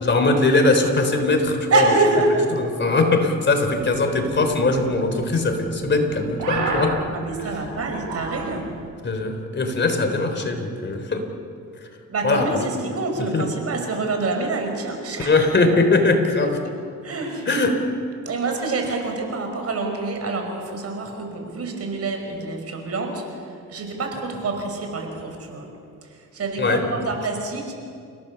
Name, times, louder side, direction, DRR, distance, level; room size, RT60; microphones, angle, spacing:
voice 1, 0.0-1.9 2.5-7.0 7.4-7.6 9.0-11.3 12.2-12.6 13.3-13.5 15.2-16.6 17.5-17.8 26.6-26.9, left 3 dB, 35° left, 5 dB, 3.7 m, -21 dB
voice 2, 1.7-2.4 7.1-8.7 12.1-15.3 15.7-16.0 17.0-17.5 18.3-23.2 23.7-25.7 26.3-27.8, right 3 dB, 55° right, 4 dB, 5.5 m, -26 dB
sound 1, 3.7-8.9, right 4 dB, 85° right, 5.7 m, -33 dB
30.0 x 17.0 x 7.0 m, 2.3 s
cardioid pair, 90°, 30 cm